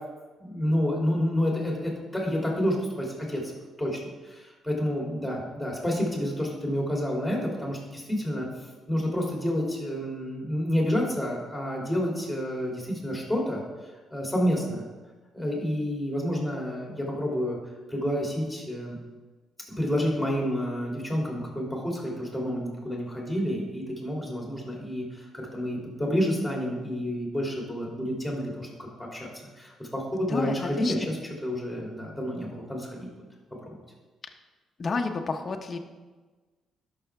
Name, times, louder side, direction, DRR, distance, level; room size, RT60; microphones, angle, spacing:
voice 1, 0.4-3.5 3.8-4.0 4.2-8.5 8.9-13.6 14.1-14.8 15.3-17.6 17.9-19.0 19.8-29.3 29.6-31.2 31.4-33.1 33.7-33.8, equal, ahead, -2 dB, 2.6 m, -29 dB
voice 2, 30.3-31.1 34.8-35.8, left 4 dB, 40° left, 4 dB, 0.7 m, -30 dB
12.0 x 5.6 x 3.4 m, 1.3 s
cardioid pair, 90°, 0 cm